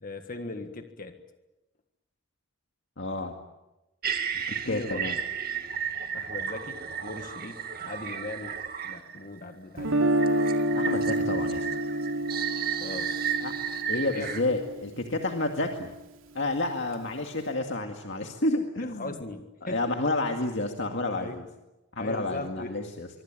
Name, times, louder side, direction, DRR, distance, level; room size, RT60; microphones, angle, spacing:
voice 1, 0.0-1.2 4.7-5.2 6.1-8.6 8.8-10.1 12.8-13.2 13.9-14.3 18.8-20.0 21.1-21.4 22.0-22.8, left 2 dB, 45° left, 6 dB, 1.7 m, -39 dB
voice 2, 3.0-3.3 4.6-5.2 10.7-11.7 13.4-13.5 13.9-15.9 16.3-19.2 19.6-21.4 21.9-23.1, left 2 dB, 65° left, 3 dB, 2.1 m, -30 dB
sound 1, 4.0-9.3 10.2-14.4, right 7 dB, 50° right, 2.2 m, -33 dB
Guitar, 9.8-15.8, right 1 dB, 90° right, 2.6 m, -29 dB
24.5 x 24.5 x 8.9 m, 1.0 s
head